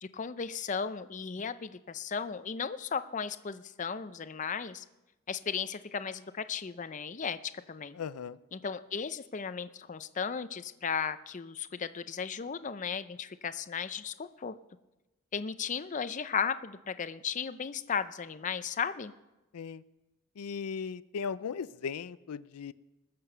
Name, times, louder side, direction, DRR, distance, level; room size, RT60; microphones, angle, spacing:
voice 1, 0.0-4.8 5.3-7.4 7.7-8.0 8.5-14.6 15.3-19.1, left 6 dB, 35° left, 13 dB, 0.5 m, -35 dB
voice 2, 8.0-8.4 19.5-19.8 20.4-22.7, left 6 dB, 90° left, 16 dB, 0.4 m, -37 dB
20.5 x 6.9 x 6.7 m, 1.0 s
head